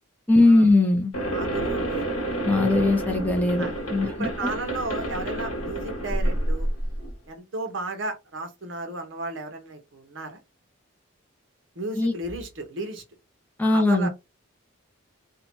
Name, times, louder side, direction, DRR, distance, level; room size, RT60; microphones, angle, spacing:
voice 1, 0.3-1.1 2.4-4.3 12.0-12.1 13.6-14.1, left 2 dB, 10° left, 0.4 m, -20 dB
sound 1, 1.1-7.1, right 1 dB, 90° left, 0.9 m, -29 dB
voice 2, 1.3-2.1 2.7-2.8 3.6-3.7 4.1-6.7 7.3-10.4 11.8-13.0 13.7-14.1, right 2 dB, 60° right, 0.8 m, -34 dB
2.7 x 2.1 x 2.9 m
head